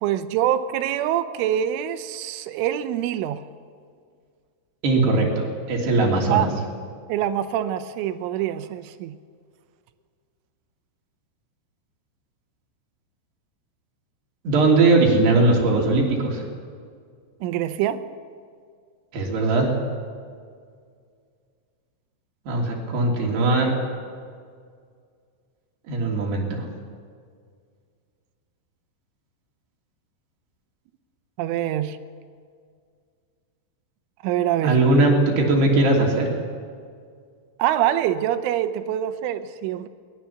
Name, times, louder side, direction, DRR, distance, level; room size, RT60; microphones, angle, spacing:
voice 1, 0.0-3.4 6.3-6.5 7.1-9.1 17.4-18.1 31.4-32.0 34.2-34.8 37.6-39.9, right 11 dB, 85° right, 10 dB, 3.4 m, -25 dB
voice 2, 4.8-6.5 14.4-16.4 19.1-19.7 22.5-23.7 25.9-26.6 34.6-36.3, right 2 dB, 60° right, -1 dB, 4.9 m, -19 dB
22.0 x 19.5 x 7.2 m, 2.1 s
omnidirectional pair, 5.6 m